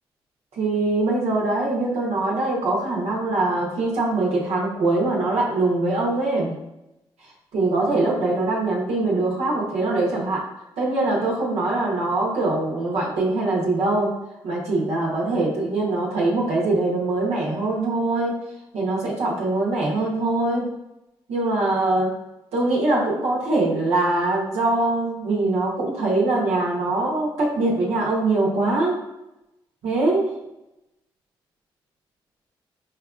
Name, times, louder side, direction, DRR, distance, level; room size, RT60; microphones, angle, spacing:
voice 1, 0.6-6.6 7.5-10.4 10.8-14.1 14.4-18.4 18.7-20.7 21.3-22.1 22.5-29.0 29.8-30.3, right 2 dB, 75° right, -4 dB, 0.9 m, -22 dB
5.1 x 2.4 x 2.4 m, 0.91 s
supercardioid pair, 45°, 11 cm